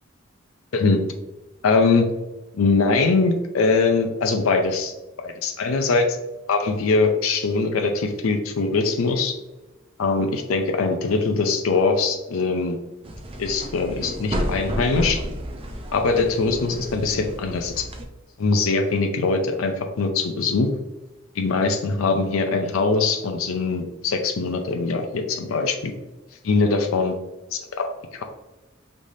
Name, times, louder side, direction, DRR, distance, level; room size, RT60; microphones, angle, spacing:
voice 1, 1.6-2.1 2.5-4.9 5.2-6.1 6.5-9.3 10.0-12.8 13.4-15.2 15.9-17.9 18.4-20.7 21.4-25.9 26.4-27.1 27.5-28.2, left 4 dB, 80° left, 5 dB, 0.5 m, -22 dB
sound 1, 13.0-18.0, equal, 25° right, 0.5 m, -31 dB
5.3 x 3.3 x 2.7 m, 1.0 s
head